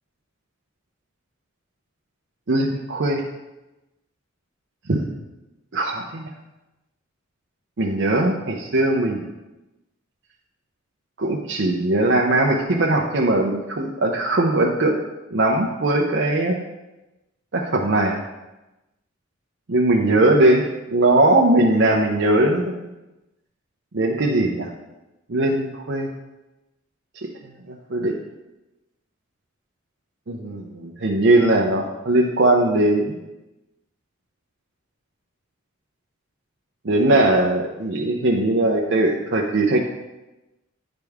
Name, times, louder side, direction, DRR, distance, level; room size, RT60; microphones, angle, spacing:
voice 1, 2.5-3.2 4.9-5.0 5.7-6.3 7.8-9.3 11.2-15.0 15.3-16.6 17.5-18.2 19.7-22.7 23.9-24.7 25.3-26.1 27.7-28.2 30.3-33.2 36.8-39.8, right 2 dB, 60° right, -2 dB, 0.7 m, -20 dB
9.3 x 5.2 x 3.5 m, 1.0 s
head